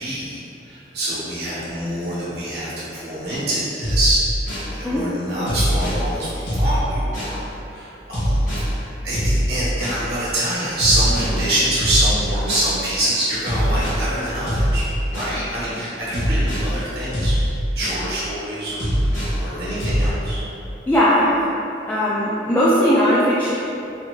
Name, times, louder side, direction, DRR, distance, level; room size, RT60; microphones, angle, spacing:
voice 1, 0.0-4.2 4.7-8.4 8.7-14.8 15.1-17.4 17.7-19.1 19.4-20.4, right 1 dB, 55° right, -10 dB, 0.9 m, -25 dB
sound 1, 3.8-4.7 5.5-6.0 6.5-7.4 8.1-8.7 9.1-10.0 10.8-11.4 11.8-12.7 13.5-14.0 14.5-15.4 16.1-16.7 17.1-18.1 18.8-19.4 19.8-20.1, equal, 45° left, 0.8 m, -22 dB
voice 2, 20.9-21.4 21.9-23.5, equal, 10° left, -10 dB, 0.3 m, -18 dB
2.7 x 2.6 x 3.0 m, 2.8 s
head